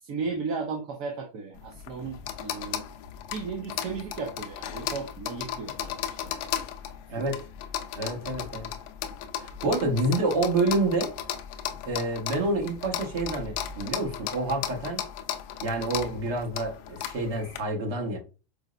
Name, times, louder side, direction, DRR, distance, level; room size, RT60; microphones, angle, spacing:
voice 1, 0.0-2.8 3.3-6.5 7.2-7.4, right 4 dB, 45° right, 0.5 m, -35 dB
sound 1, 1.5-17.6, left 10 dB, 55° left, 0.5 m, -36 dB
voice 2, 7.9-8.7 9.4-11.1 11.8-15.0 15.6-18.2, right 2 dB, 65° right, 1.1 m, -28 dB
4.5 x 2.1 x 2.5 m
supercardioid pair, 155°, 0 cm